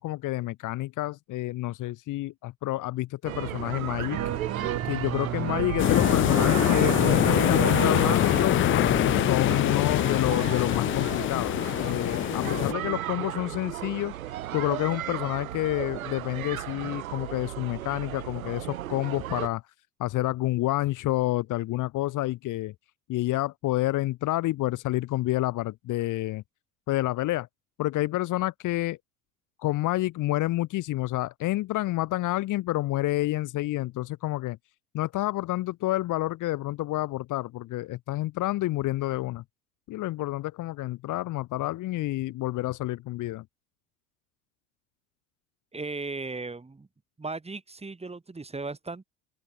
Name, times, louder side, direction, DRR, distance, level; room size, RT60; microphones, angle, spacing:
voice 1, 0.0-4.2 4.8-8.6 9.1-19.6 20.0-22.7 23.1-26.4 26.9-27.5 27.8-29.0 29.6-34.6 34.9-39.4 39.9-43.5, left 17 dB, 45° left, 1.8 m, -29 dB
sound 1, 3.2-19.5, right 13 dB, 75° right, 6.1 m, -35 dB
sound 2, 4.1-9.7 9.9-10.0, right 9 dB, 35° right, 3.9 m, -32 dB
sound 3, 5.8-12.7, left 14 dB, 30° left, 0.5 m, -24 dB
voice 2, 45.7-46.9 47.2-49.0, right 3 dB, 15° right, 6.2 m, -36 dB
open air
figure-of-eight pair, 70°, 42 cm